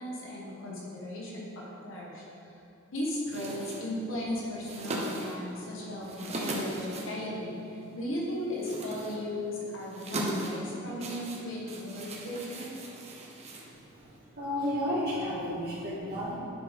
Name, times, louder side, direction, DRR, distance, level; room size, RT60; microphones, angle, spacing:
voice 1, 0.0-2.6 2.9-12.8, left 1 dB, 75° left, -4 dB, 1.3 m, -36 dB
sound 1, 3.3-14.2, right 1 dB, 35° right, 0.8 m, -39 dB
voice 2, 13.9-16.3, equal, 50° right, -12 dB, 1.7 m, -32 dB
10.0 x 5.3 x 3.6 m, 2.8 s
head